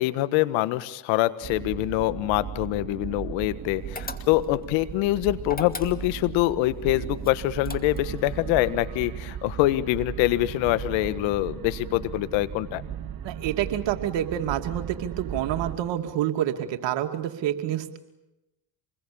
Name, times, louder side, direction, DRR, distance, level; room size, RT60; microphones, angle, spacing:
voice 1, 0.0-12.8, left 16 dB, 75° left, 14 dB, 1.4 m, -25 dB
sound 1, 1.4-15.7, right 8 dB, 50° right, 2.8 m, -36 dB
sound 2, 4.0-4.6 5.4-6.3 7.2-8.2, left 3 dB, 20° left, 2.4 m, -38 dB
voice 2, 13.2-18.0, right 11 dB, 65° right, 6 dB, 2.6 m, -28 dB
26.5 x 21.5 x 8.7 m, 0.95 s
hypercardioid pair, 65°, 46 cm